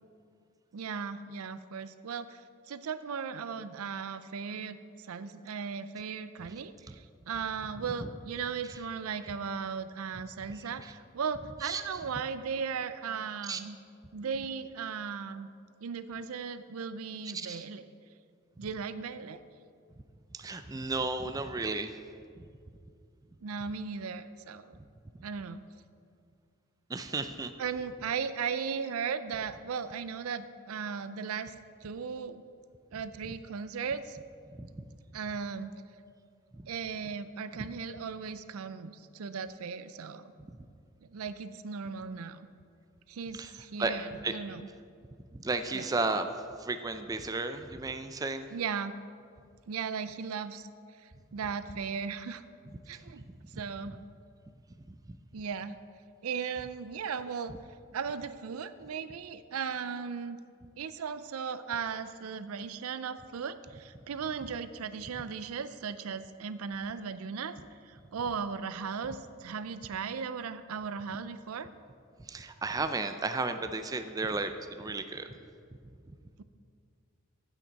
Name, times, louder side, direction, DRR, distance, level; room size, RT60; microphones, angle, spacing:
voice 1, 0.7-2.4 2.7-13.8 14.1-15.5 15.8-17.8 18.6-19.4 23.4-24.7 25.2-25.6 27.6-31.5 31.8-32.4 32.9-34.2 35.1-35.7 36.7-40.3 41.0-42.5 43.1-44.7 45.7-45.9 48.5-48.9 49.7-50.7 51.0-52.4 52.9-53.2 53.6-54.0 55.3-55.8 56.2-57.5 57.9-60.4 60.8-67.6 67.9-71.7, right 6 dB, 90° right, 13 dB, 0.5 m, -37 dB
voice 2, 17.2-17.6 20.3-22.0 25.1-25.3 26.9-27.5 34.5-34.8 36.5-36.7 40.5-40.7 43.3-43.5 43.8-43.9 44.2-44.3 45.4-46.3 46.6-48.5 55.1-55.2 72.2-75.3, right 3 dB, 15° right, 8 dB, 0.4 m, -34 dB
15.0 x 5.9 x 4.0 m, 2.3 s
head